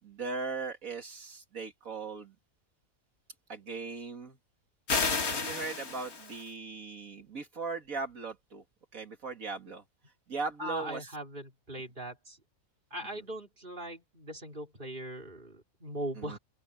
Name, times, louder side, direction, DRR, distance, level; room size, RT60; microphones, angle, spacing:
voice 1, 0.0-2.3 3.5-4.4 5.3-8.6 8.9-9.8 10.3-11.1 16.2-16.4, right 4 dB, 75° right, 2.6 m, -38 dB
sound 1, 4.9-6.5, left 4 dB, 85° left, 3.0 m, -31 dB
voice 2, 10.6-12.4 12.9-16.4, right 1 dB, 35° right, 4.2 m, -40 dB
open air
omnidirectional pair, 1.5 m